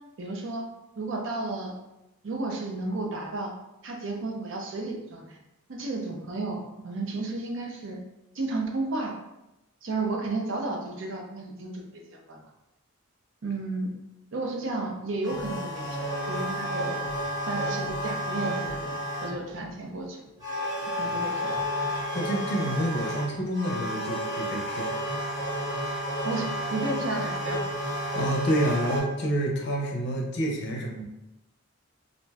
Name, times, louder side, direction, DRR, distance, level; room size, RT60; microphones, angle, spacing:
voice 1, 0.2-0.7 1.0-1.7 2.2-3.5 3.8-5.4 5.7-8.0 8.3-9.2 9.8-12.4 13.4-13.9 14.3-17.0 17.4-20.2 21.0-21.6 26.2-27.7, right 2 dB, 60° right, 1 dB, 0.5 m, -33 dB
sound 1, 15.2-19.5 20.4-29.0, equal, 15° right, 0.9 m, -31 dB
voice 2, 22.1-24.9 28.1-31.0, right 1 dB, 50° left, 0 dB, 0.5 m, -28 dB
2.5 x 2.2 x 3.2 m, 0.93 s
head